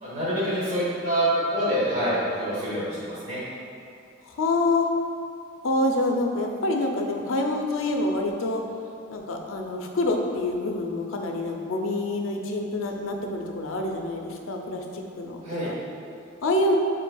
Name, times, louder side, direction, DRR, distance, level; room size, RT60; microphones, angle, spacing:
voice 1, 0.0-3.4 15.4-15.7, equal, 35° right, -8 dB, 1.3 m, -26 dB
voice 2, 4.3-4.9 5.6-8.6 9.1-15.4 16.4-16.8, left 2 dB, 80° left, 2 dB, 0.5 m, -26 dB
6.8 x 3.1 x 2.3 m, 2.4 s
head